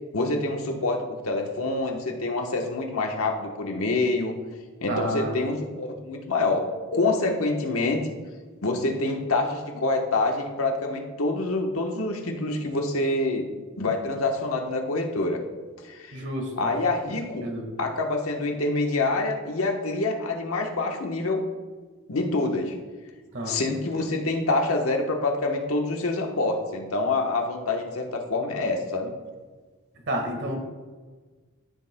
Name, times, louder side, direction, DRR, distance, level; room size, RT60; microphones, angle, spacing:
voice 1, 0.1-4.3 4.8-6.7 6.9-8.1 8.6-13.5 13.8-15.4 15.8-16.2 16.6-17.5 17.8-21.4 22.1-22.8 23.5-29.1, left 2 dB, 75° left, 2 dB, 1.1 m, -26 dB
voice 2, 4.9-5.4 16.1-16.7 17.4-17.7 23.3-23.6 30.1-30.6, right 1 dB, 55° right, 2 dB, 1.7 m, -30 dB
14.0 x 7.8 x 2.2 m, 1.4 s
head